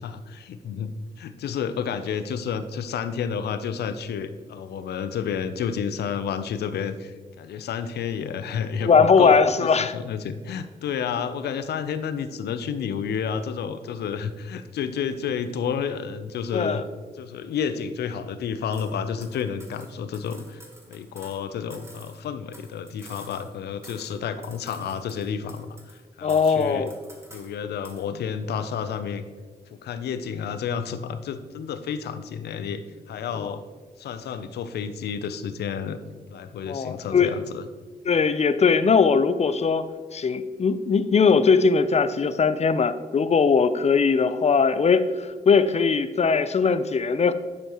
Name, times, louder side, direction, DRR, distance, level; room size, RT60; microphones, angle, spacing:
voice 1, 0.0-16.9 17.1-20.6 20.9-26.9 27.3-29.2 29.7-33.6 34.0-36.0 36.3-37.6, left 7 dB, 85° left, 11 dB, 0.5 m, -31 dB
voice 2, 8.9-9.9 16.5-16.8 26.2-26.9 33.4-33.5 36.7-37.3 38.0-39.8 40.1-47.3, left 5 dB, 40° left, 12 dB, 0.6 m, -20 dB
sound 1, 18.7-18.9 19.2-21.4 21.7-23.6 23.8-24.2 24.4-26.0 26.3-27.5 27.8-28.1, right 1 dB, 15° right, 2.0 m, -49 dB
11.0 x 6.4 x 3.0 m, 1.4 s
supercardioid pair, 50°, 16 cm